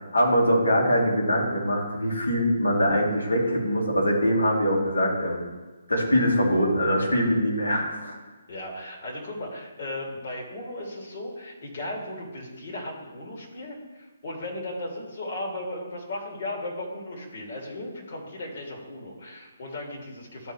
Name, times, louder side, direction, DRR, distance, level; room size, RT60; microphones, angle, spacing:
voice 1, 0.1-5.4 5.9-8.1, equal, 85° left, -3 dB, 2.4 m, -23 dB
voice 2, 8.5-20.5, left 1 dB, 55° left, -2 dB, 2.5 m, -36 dB
12.5 x 4.4 x 3.2 m, 1.2 s
figure-of-eight pair, 145°, 0 cm